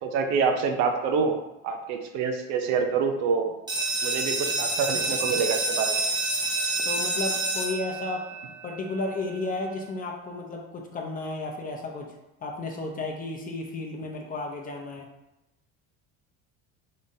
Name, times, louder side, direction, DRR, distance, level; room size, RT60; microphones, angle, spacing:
voice 1, 0.0-1.4 1.6-3.5 4.0-6.0, right 5 dB, 70° right, 5 dB, 0.6 m, -26 dB
sound 1, 3.7-9.1, right 2 dB, 15° right, 0.7 m, -28 dB
voice 2, 6.8-8.2 8.6-12.2 12.4-15.1, left 2 dB, 30° left, 1 dB, 0.6 m, -33 dB
3.7 x 3.7 x 2.7 m, 0.94 s
cardioid pair, 135°, 30 cm